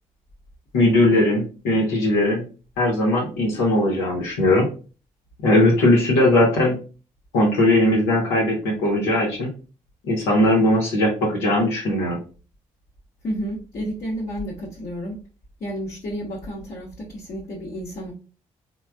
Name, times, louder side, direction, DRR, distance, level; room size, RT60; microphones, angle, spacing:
voice 1, 0.7-2.4 2.8-4.6 5.4-6.8 7.3-9.5 10.0-12.2, left 1 dB, 80° left, -3 dB, 0.8 m, -19 dB
voice 2, 13.2-15.2 15.6-18.1, equal, 50° left, -5 dB, 0.9 m, -31 dB
3.2 x 2.2 x 2.3 m, 0.36 s
hypercardioid pair, 40°, 18 cm